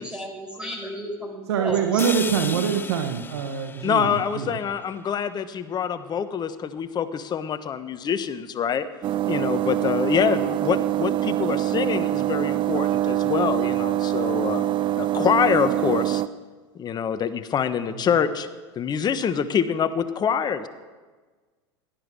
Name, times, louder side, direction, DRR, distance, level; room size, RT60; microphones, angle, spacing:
voice 1, 0.0-2.1 2.5-2.6, equal, 5° right, 0 dB, 5.0 m, -33 dB
voice 2, 1.5-4.6 17.9-18.2, right 8 dB, 75° right, 4 dB, 1.4 m, -25 dB
sound 1, 2.0-6.0, left 5 dB, 15° left, 0.4 m, -37 dB
voice 3, 3.8-8.9 9.3-14.7 14.9-16.2 16.7-18.5 18.7-20.7, left 7 dB, 30° left, 11 dB, 1.2 m, -25 dB
sound 2, 9.0-16.3, right 14 dB, 35° right, 0.6 m, -24 dB
16.5 x 12.0 x 6.3 m, 1.4 s
hypercardioid pair, 85°, 14 cm